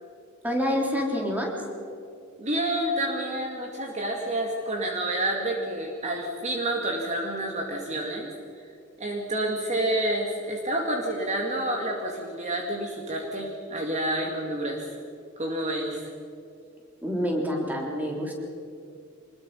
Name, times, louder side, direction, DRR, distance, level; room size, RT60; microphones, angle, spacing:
voice 1, 0.4-1.5 17.0-18.3, equal, 10° right, 0 dB, 3.6 m, -27 dB
voice 2, 2.4-8.3 9.0-15.0 15.4-16.1, right 1 dB, 35° right, 0 dB, 2.2 m, -29 dB
25.0 x 20.5 x 5.7 m, 2.4 s
head